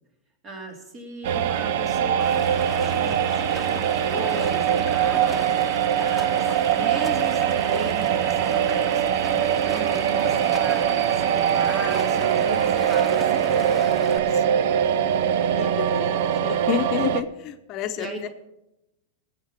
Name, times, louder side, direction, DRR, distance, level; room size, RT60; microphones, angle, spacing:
voice 1, 0.4-2.4 2.8-5.5 6.0-13.5 18.0-18.3, right 2 dB, 35° right, 3 dB, 3.4 m, -37 dB
sound 1, 1.2-17.2, right 9 dB, 65° right, 0.7 m, -22 dB
Stream, 2.2-14.2, left 3 dB, 10° left, 1.3 m, -38 dB
voice 2, 14.3-14.7 15.2-18.3, left 9 dB, 45° left, 8 dB, 0.9 m, -31 dB
17.0 x 7.8 x 6.0 m, 0.90 s
hypercardioid pair, 105°, 0 cm